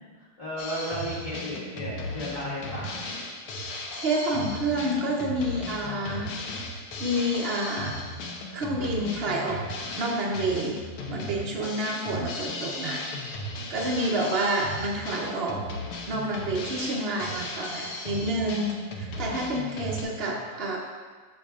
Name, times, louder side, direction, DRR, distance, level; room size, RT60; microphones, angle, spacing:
voice 1, 0.4-3.1 20.1-20.4, equal, 15° left, -8 dB, 2.3 m, -34 dB
Drum kit, 0.6-20.0, left 1 dB, 85° left, 1.8 m, -36 dB
voice 2, 4.0-6.3 7.0-8.0 8.5-9.6 10.0-10.8 11.1-13.0 13.7-15.6 16.1-20.8, right 1 dB, 80° right, -1 dB, 0.5 m, -28 dB
14.5 x 5.1 x 2.4 m, 1.5 s
omnidirectional pair, 2.4 m